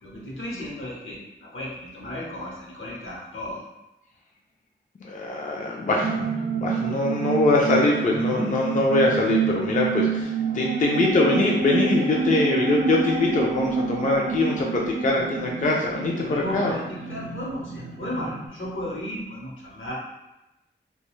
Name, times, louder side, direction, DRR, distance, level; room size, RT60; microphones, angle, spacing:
voice 1, 0.0-3.6 16.2-19.9, left 1 dB, 70° left, -5 dB, 0.9 m, -34 dB
voice 2, 5.0-6.3 6.6-16.7, left 2 dB, 40° left, -1 dB, 0.4 m, -23 dB
sound 1, 5.9-18.5, right 5 dB, 55° right, 0.5 m, -28 dB
2.4 x 2.3 x 3.1 m, 0.96 s
cardioid pair, 50°, 20 cm